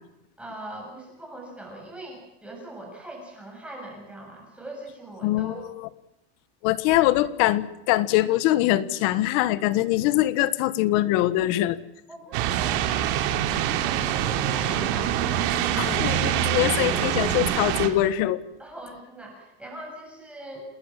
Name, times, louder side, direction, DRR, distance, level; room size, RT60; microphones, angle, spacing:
voice 1, 0.4-5.7 12.1-13.2 13.6-15.4 18.6-20.7, right 1 dB, 5° right, 0 dB, 7.5 m, -41 dB
voice 2, 5.2-5.9 6.6-11.8 15.8-18.4, left 15 dB, 50° left, 15 dB, 1.5 m, -23 dB
sound 1, 12.3-17.9, right 10 dB, 55° right, 3.2 m, -25 dB
28.5 x 20.5 x 7.5 m, 0.85 s
cardioid pair, 180°, 31 cm